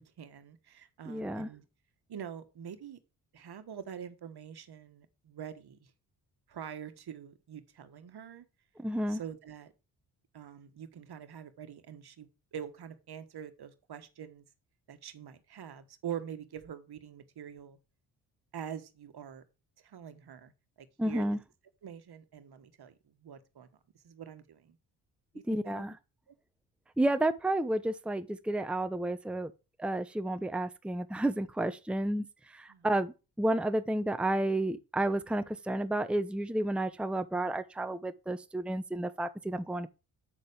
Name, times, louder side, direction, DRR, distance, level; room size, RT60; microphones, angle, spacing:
voice 1, 0.0-1.6 2.1-3.0 3.3-5.8 6.5-8.4 9.1-9.7 10.3-14.4 14.9-17.8 18.5-19.4 19.8-20.5 20.8-21.2 21.8-22.9 23.2-23.7 24.0-24.8 25.3-25.8 32.7-32.9, right 8 dB, 55° right, 1.5 m, -45 dB
voice 2, 1.1-1.5 8.8-9.2 21.0-21.4 25.5-26.0 27.0-29.5 29.8-39.9, right 1 dB, ahead, 0.9 m, -31 dB
8.0 x 6.7 x 4.9 m
supercardioid pair, 55°, 46 cm